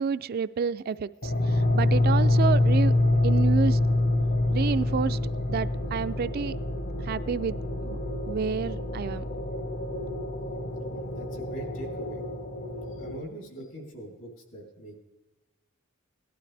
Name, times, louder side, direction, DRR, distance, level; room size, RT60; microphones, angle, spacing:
voice 1, 0.0-1.3 1.7-2.9 3.2-3.8 4.5-5.2 5.5-6.5 7.1-8.0 8.3-9.2, right 6 dB, 45° right, 13 dB, 0.3 m, -29 dB
sound 1, 1.2-13.2, left 1 dB, 40° left, 0.7 m, -26 dB
voice 2, 10.8-12.2 12.9-15.0, right 2 dB, 65° left, 1 dB, 3.3 m, -42 dB
17.5 x 12.0 x 3.3 m, 1.2 s
head